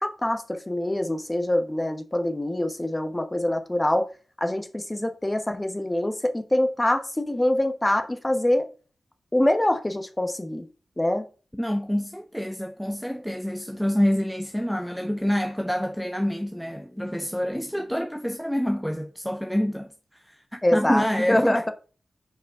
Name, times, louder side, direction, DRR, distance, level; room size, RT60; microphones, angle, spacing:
voice 1, 0.0-4.1 4.4-8.7 9.3-10.6 11.0-11.2 20.6-21.7, left 1 dB, 15° left, 1.0 m, -24 dB
voice 2, 11.5-21.7, equal, ahead, 0.5 m, -27 dB
5.1 x 5.0 x 4.7 m
cardioid pair, 60°, 0 cm